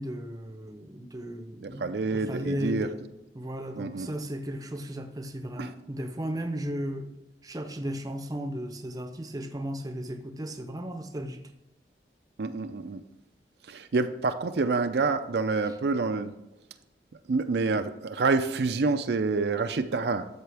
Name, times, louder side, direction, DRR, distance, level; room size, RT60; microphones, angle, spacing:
voice 1, 0.0-1.8 2.1-3.0 3.3-7.1 7.4-11.4, equal, 20° right, 7 dB, 0.6 m, -35 dB
voice 2, 1.6-2.9 3.7-4.1 5.6-5.7 12.4-13.0 13.7-16.3 17.3-20.3, right 3 dB, 65° right, 8 dB, 0.5 m, -27 dB
12.5 x 6.7 x 3.4 m, 0.92 s
head